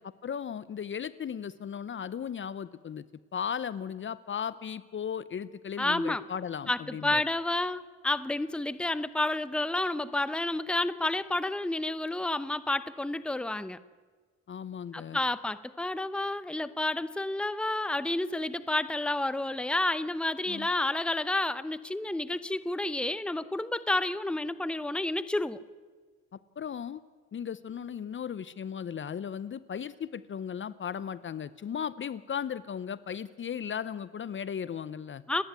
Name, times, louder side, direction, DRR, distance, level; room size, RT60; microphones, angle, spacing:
voice 1, 0.0-3.0 3.3-7.2 14.5-15.2 20.5-20.7 26.3-27.0 27.3-35.2, left 8 dB, 40° left, 17 dB, 0.7 m, -36 dB
voice 2, 5.8-6.2 6.7-13.8 14.9-25.6 35.3-35.4, left 2 dB, 5° left, 15 dB, 0.8 m, -30 dB
29.5 x 10.0 x 9.5 m, 1.5 s
cardioid pair, 90°, 30 cm